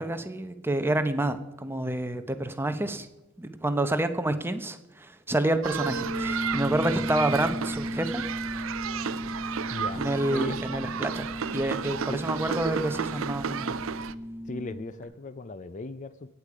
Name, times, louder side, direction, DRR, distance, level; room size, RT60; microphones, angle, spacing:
voice 1, 0.0-3.1 3.4-8.2 10.0-11.2 11.5-13.8, right 1 dB, 10° right, 9 dB, 0.8 m, -28 dB
sound 1, 5.6-14.2, right 7 dB, 85° right, 0.5 m, -33 dB
sound 2, 5.8-15.0, equal, 5° left, 1.7 m, -35 dB
voice 2, 9.7-10.0 10.3-10.5 12.1-12.2 14.5-16.3, left 2 dB, 40° left, 14 dB, 0.5 m, -37 dB
17.0 x 8.3 x 4.9 m, 1.0 s
head